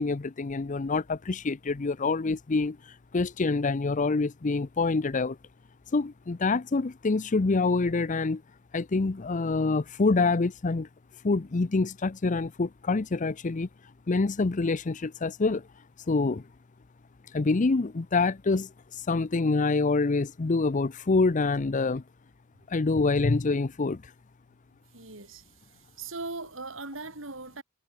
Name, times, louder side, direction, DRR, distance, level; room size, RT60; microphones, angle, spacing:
voice 1, 0.0-2.8 3.1-5.4 5.9-8.4 8.7-10.9 11.2-13.7 14.1-15.6 16.1-16.5 17.3-18.7 19.1-22.0 22.7-24.0, left 3 dB, 40° left, 0.6 m, -26 dB
voice 2, 24.9-27.6, right 3 dB, 75° right, 4.5 m, -40 dB
head